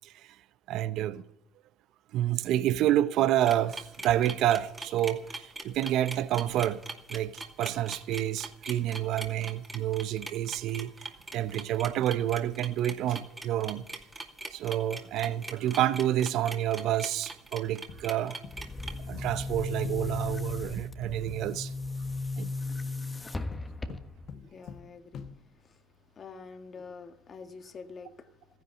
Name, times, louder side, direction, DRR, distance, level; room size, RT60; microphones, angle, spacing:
voice 1, 0.0-0.4 0.7-1.2 2.1-6.8 7.1-13.8 14.5-18.4 19.1-21.7 22.4-22.5 23.9-24.0, right 12 dB, 65° right, 0.8 m, -29 dB
sound 1, 3.4-18.9, right 2 dB, 15° right, 2.4 m, -41 dB
sound 2, 17.9-18.9 19.1-20.2 23.5-25.8, left 6 dB, 55° left, 1.3 m, -47 dB
Boom, 18.5-24.3, left 3 dB, 20° left, 1.3 m, -36 dB
voice 2, 24.3-25.9 26.1-28.5, left 5 dB, 40° left, 1.7 m, -47 dB
14.0 x 10.5 x 8.0 m
supercardioid pair, 85°, 0 cm